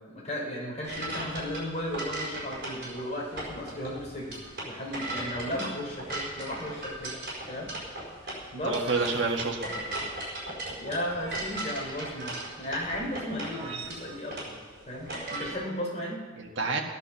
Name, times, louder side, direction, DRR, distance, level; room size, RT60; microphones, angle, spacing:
voice 1, 0.0-4.4 4.6-7.2 7.5-7.7 8.2-8.8 10.8-14.5 14.9-16.2, equal, 35° left, -2 dB, 3.7 m, -35 dB
sound 1, 0.8-15.5, right 1 dB, 55° right, 4.9 m, -38 dB
sound 2, 8.7-9.5 11.0-11.7 13.3-14.3 15.1-15.6, right 4 dB, 35° right, 2.1 m, -43 dB
voice 2, 8.7-10.0 16.4-16.8, right 3 dB, 70° right, 0 dB, 1.8 m, -29 dB
13.5 x 10.5 x 7.1 m, 1.5 s
head